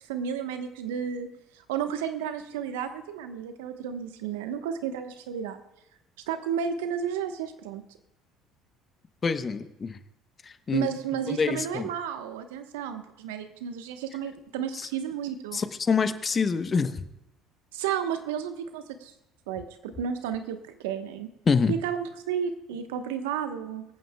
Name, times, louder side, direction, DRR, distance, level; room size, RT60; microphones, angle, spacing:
voice 1, 0.1-1.3 1.7-5.6 6.3-7.8 10.7-15.6 17.7-19.1 19.5-21.3 21.7-23.8, right 8 dB, 80° right, 8 dB, 1.1 m, -32 dB
voice 2, 9.2-10.0 10.4-10.9 11.3-11.9 14.7-14.9 15.5-17.0 21.5-21.8, left 5 dB, 35° left, 11 dB, 1.0 m, -26 dB
23.0 x 9.1 x 2.3 m, 0.88 s
hypercardioid pair, 65°, 0 cm